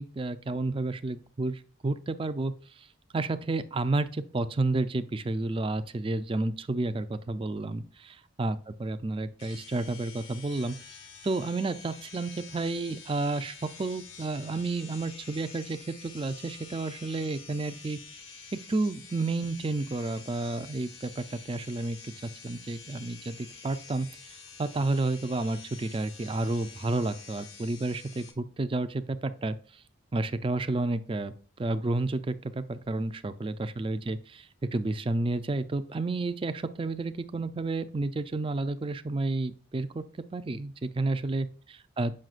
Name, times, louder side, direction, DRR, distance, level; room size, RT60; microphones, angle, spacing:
voice 1, 0.0-2.9 3.1-10.8 11.2-18.0 18.5-29.8 30.1-40.0 40.3-42.1, right 2 dB, 25° right, 11 dB, 0.4 m, -31 dB
sound 1, 9.4-28.3, left 5 dB, 75° left, 1.3 m, -48 dB
7.6 x 5.7 x 2.4 m, 0.40 s
head